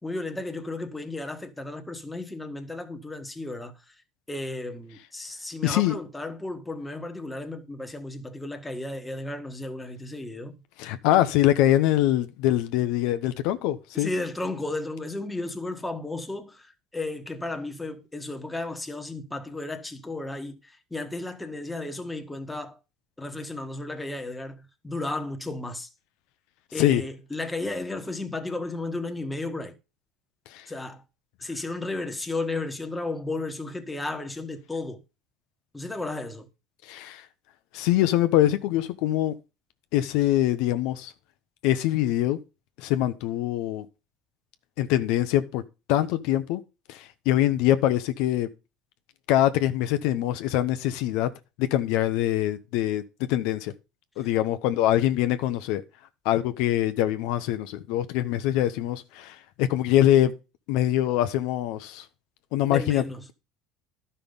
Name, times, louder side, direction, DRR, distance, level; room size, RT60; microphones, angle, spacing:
voice 1, 0.0-3.7 4.3-10.5 13.9-22.8 23.2-25.9 26.7-29.8 30.7-31.0 31.4-35.0 35.7-36.5 62.7-63.2, left 2 dB, 10° left, 1.4 m, -34 dB
voice 2, 5.6-6.0 10.8-14.1 26.8-27.0 30.5-30.6 36.9-37.2 37.7-39.3 39.9-41.1 41.6-42.4 42.8-43.9 44.8-45.6 45.9-46.6 46.9-48.5 49.3-51.3 51.6-53.7 54.2-55.8 56.2-60.3 60.7-62.0 62.5-63.0, left 13 dB, 75° left, 0.7 m, -24 dB
11.5 x 5.6 x 5.3 m
supercardioid pair, 115°, 0 cm